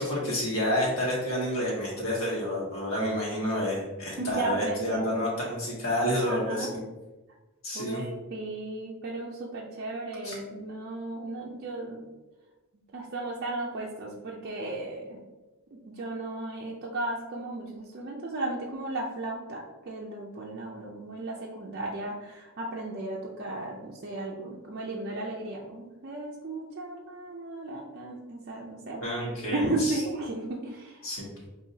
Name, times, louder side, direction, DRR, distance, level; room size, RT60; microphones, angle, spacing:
voice 1, 0.0-6.8 7.6-8.0 10.2-10.3 28.9-30.0 31.0-31.4, equal, 65° left, -4 dB, 1.4 m, -29 dB
voice 2, 4.2-5.3 6.2-6.7 7.7-12.1 12.9-15.2 15.9-29.0 29.5-31.1, right 2 dB, 45° right, -3 dB, 0.5 m, -35 dB
5.5 x 2.7 x 2.7 m, 1.1 s
head